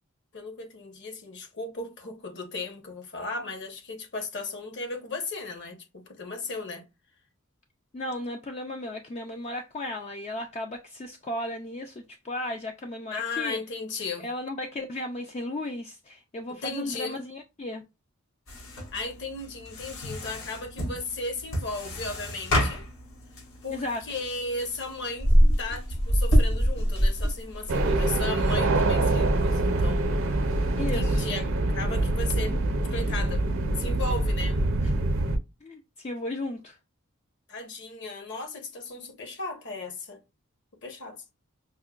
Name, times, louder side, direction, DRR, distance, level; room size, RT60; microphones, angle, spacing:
voice 1, 0.3-6.8 13.1-14.3 16.6-17.2 18.9-22.9 23.6-25.3 25.6-30.1 30.8-32.6 32.9-33.5 33.8-34.6 37.5-40.2 40.8-41.3, left 3 dB, 50° left, 1.0 m, -35 dB
voice 2, 7.9-13.6 14.2-17.8 23.7-24.0 30.8-31.3 35.6-36.8, left 1 dB, 30° left, 0.3 m, -35 dB
sound 1, 18.5-31.0, equal, 85° left, 2.1 m, -28 dB
sound 2, 27.7-35.4, right 2 dB, 65° right, 0.6 m, -25 dB
5.4 x 2.2 x 2.3 m
head